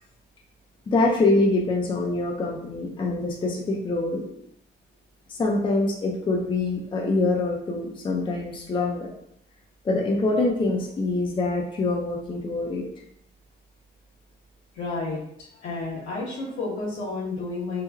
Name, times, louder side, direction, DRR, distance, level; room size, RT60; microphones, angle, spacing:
voice 1, 0.9-4.3 5.3-9.1 9.8-12.8, left 2 dB, 25° left, -1 dB, 0.4 m, -25 dB
voice 2, 14.7-15.2 15.5-17.8, left 3 dB, 85° left, -6 dB, 1.1 m, -31 dB
3.1 x 2.2 x 2.3 m, 0.74 s
cardioid pair, 90°, 20 cm